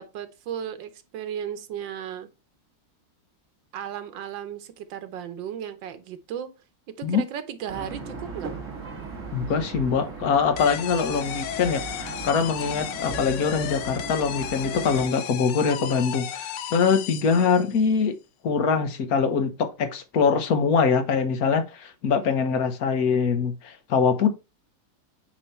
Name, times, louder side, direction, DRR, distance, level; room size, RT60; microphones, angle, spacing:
voice 1, 0.0-2.3 3.7-6.5 6.9-8.5, right 9 dB, 90° right, 1.6 m, -35 dB
sound 1, 7.7-15.1, right 4 dB, 45° right, 2.6 m, -38 dB
voice 2, 9.3-18.2 18.4-24.3, left 5 dB, 55° left, 1.4 m, -23 dB
sound 2, 10.6-17.9, left 11 dB, 80° left, 1.3 m, -34 dB
8.8 x 3.2 x 4.3 m
omnidirectional pair, 1.9 m